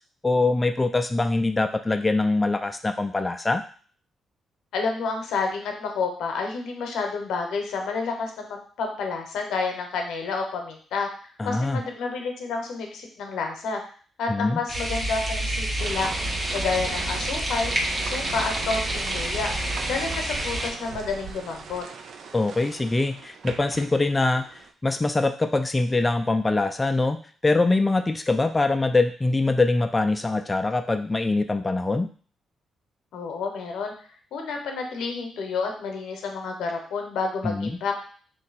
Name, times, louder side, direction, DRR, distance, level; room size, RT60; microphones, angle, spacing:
voice 1, 0.2-3.6 11.4-11.8 14.3-14.6 22.3-32.1 37.4-37.7, left 2 dB, 20° left, 6 dB, 0.3 m, -23 dB
voice 2, 4.7-13.8 14.2-16.1 16.5-17.7 18.0-19.5 19.9-21.8 33.1-33.9 34.3-37.9, left 4 dB, 80° left, 3 dB, 0.7 m, -29 dB
sound 1, 14.7-20.7, right 1 dB, 30° right, 0.8 m, -28 dB
sound 2, 15.8-24.7, right 5 dB, 70° right, 0.4 m, -38 dB
3.1 x 2.6 x 4.0 m, 0.43 s
cardioid pair, 70°, 0 cm